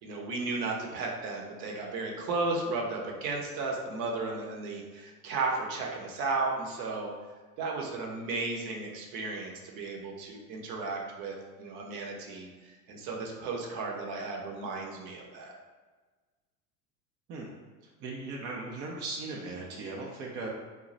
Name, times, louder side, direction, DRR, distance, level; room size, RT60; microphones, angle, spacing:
voice 1, 0.0-7.1 7.6-15.5, right 3 dB, 50° right, 0 dB, 0.7 m, -34 dB
voice 2, 18.0-20.5, right 3 dB, 30° right, -2 dB, 0.4 m, -38 dB
2.2 x 2.0 x 3.8 m, 1.4 s
hypercardioid pair, 90°, 45 cm